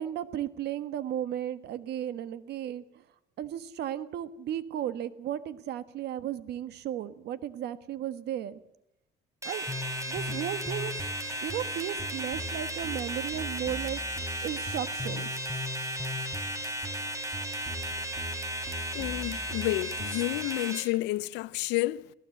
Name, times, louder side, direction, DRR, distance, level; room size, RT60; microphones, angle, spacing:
voice 1, 0.0-3.0 3.4-8.6 9.4-9.7 10.1-11.0 11.4-14.0 14.4-15.3, right 11 dB, 70° right, 1.4 m, -35 dB
sound 1, 9.4-20.8, right 1 dB, 20° right, 3.4 m, -35 dB
sound 2, 9.7-20.3, left 1 dB, ahead, 5.3 m, -40 dB
voice 2, 18.9-22.1, left 18 dB, 90° left, 0.7 m, -30 dB
22.5 x 17.5 x 7.9 m
cardioid pair, 95°, 17 cm